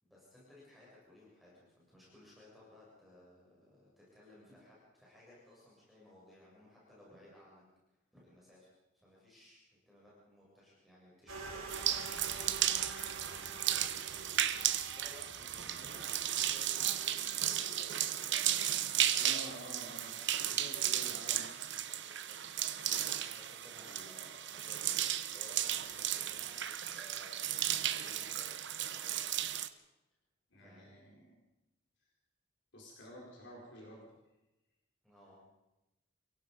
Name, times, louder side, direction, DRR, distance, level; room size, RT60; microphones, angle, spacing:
voice 1, 0.0-7.6 7.9-8.7 8.9-12.5 13.2-19.6 20.2-20.4 20.9-21.4 21.8-29.5 30.5-30.9 35.0-35.4, left 1 dB, ahead, -7 dB, 7.5 m, -59 dB
sound 1, 11.3-17.5, right 3 dB, 85° right, 5.0 m, -48 dB
sound 2, 11.7-29.7, right 11 dB, 55° right, 1.0 m, -35 dB
sound 3, 17.5-18.4, left 1 dB, 90° left, 5.7 m, -55 dB
voice 2, 19.1-21.8 30.5-31.4 32.7-34.0, equal, 55° left, -3 dB, 4.5 m, -50 dB
29.0 x 17.5 x 5.5 m, 0.98 s
head